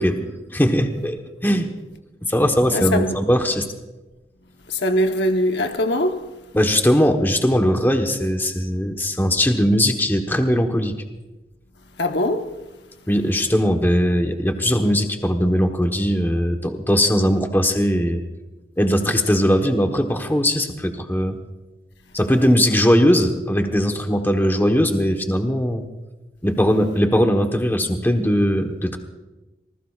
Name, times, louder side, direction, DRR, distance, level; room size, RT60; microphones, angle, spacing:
voice 1, 0.0-1.7 2.2-3.6 6.5-11.0 13.1-18.2 18.8-21.4 22.1-25.9 26.4-29.0, equal, 10° left, 1.1 m, -19 dB
voice 2, 2.7-3.2 4.7-6.4 12.0-12.7, left 1 dB, 70° left, 1.1 m, -22 dB
27.0 x 19.5 x 2.4 m
head